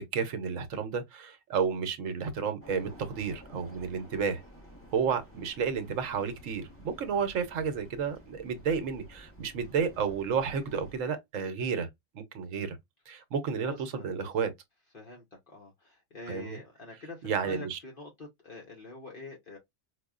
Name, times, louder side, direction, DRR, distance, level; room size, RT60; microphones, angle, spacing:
voice 1, 0.0-4.4 4.9-11.9 12.1-12.8 13.1-14.5 16.3-16.6 17.2-17.8, right 6 dB, 75° right, 1.1 m, -31 dB
sound 1, 2.6-11.0, equal, 10° left, 1.1 m, -52 dB
voice 2, 13.6-14.3 14.9-19.6, left 3 dB, 45° left, 1.1 m, -46 dB
4.7 x 2.3 x 2.3 m
omnidirectional pair, 1.4 m